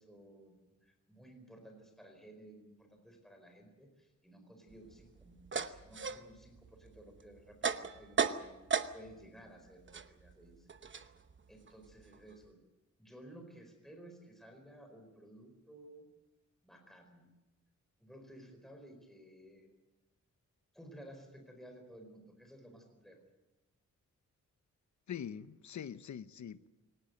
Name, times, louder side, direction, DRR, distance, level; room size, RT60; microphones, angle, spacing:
voice 1, 0.0-8.5 8.9-11.1 11.5-12.6 13.0-16.1 16.6-17.3 18.0-19.7 20.7-23.3, right 1 dB, ahead, 4.5 m, -56 dB
sound 1, 4.7-9.3 9.6-12.5, right 6 dB, 40° right, 1.0 m, -38 dB
voice 2, 25.1-26.7, left 8 dB, 70° left, 0.9 m, -43 dB
23.0 x 19.0 x 7.9 m
wide cardioid pair, 135°, 30 cm